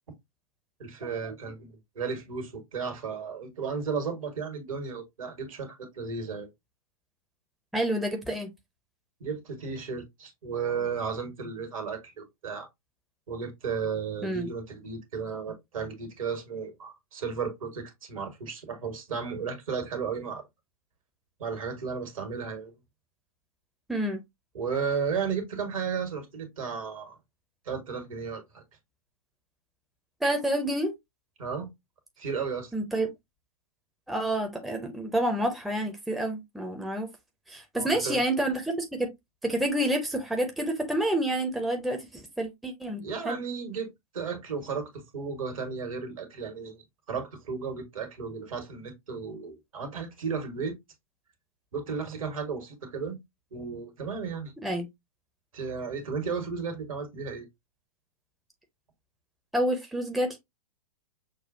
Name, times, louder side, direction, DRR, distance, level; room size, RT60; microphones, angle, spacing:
voice 1, 0.8-6.5 9.2-12.7 13.3-20.4 21.4-22.7 24.5-27.1 27.6-28.6 31.4-31.7 32.2-32.7 37.7-38.2 43.0-43.9 44.1-50.7 51.7-53.2 53.5-54.5 55.5-57.5, right 5 dB, 65° right, 1.5 m, -34 dB
voice 2, 7.7-8.5 14.2-14.5 23.9-24.2 30.2-30.9 32.7-33.1 34.1-37.1 37.5-39.1 39.4-43.4 54.6-54.9 59.5-60.4, right 1 dB, ahead, 0.7 m, -28 dB
6.2 x 2.3 x 2.6 m
figure-of-eight pair, 105°, 19 cm